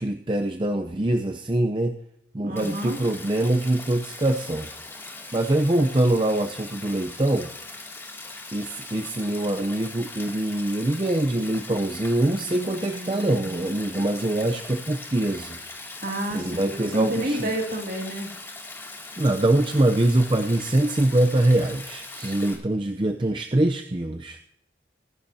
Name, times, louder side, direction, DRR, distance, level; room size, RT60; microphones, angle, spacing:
voice 1, 0.0-1.9 2.3-4.7 5.3-7.5 8.5-15.6 16.3-17.5 19.2-24.4, right 1 dB, 25° right, 5 dB, 0.6 m, -24 dB
voice 2, 2.4-3.0 12.4-13.7 16.0-18.3 22.1-22.4, right 1 dB, 50° right, 2 dB, 2.4 m, -31 dB
Stream, 2.6-22.6, left 2 dB, 15° left, 2.4 m, -40 dB
23.0 x 11.5 x 2.7 m, 0.76 s
head